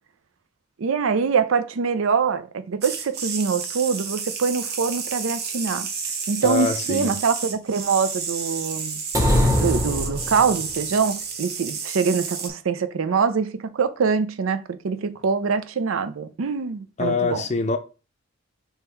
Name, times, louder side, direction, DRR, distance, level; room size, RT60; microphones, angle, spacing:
voice 1, 0.8-5.9 6.3-9.0 9.5-17.4, right 5 dB, 90° right, 0.5 m, -24 dB
sound 1, 2.8-12.5, right 6 dB, 50° right, 0.7 m, -31 dB
voice 2, 6.4-7.1 17.0-17.8, left 4 dB, 35° left, 0.5 m, -24 dB
sound 2, 9.1-10.7, left 1 dB, 15° right, 0.9 m, -21 dB
3.7 x 2.9 x 4.4 m
head